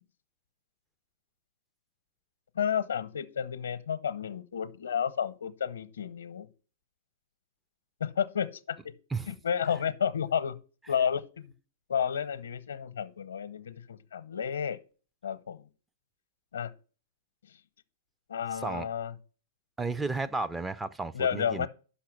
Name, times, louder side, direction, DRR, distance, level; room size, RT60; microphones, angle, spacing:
voice 1, 2.6-6.5 8.0-8.8 9.3-10.5 10.9-11.5 11.9-14.8 15.2-15.6 16.5-16.7 18.3-19.1 21.1-21.7, left 8 dB, 75° left, 0.8 m, -31 dB
voice 2, 18.5-18.9 19.8-21.7, right 3 dB, 10° right, 0.4 m, -33 dB
5.8 x 5.8 x 6.4 m
hypercardioid pair, 110°, 0 cm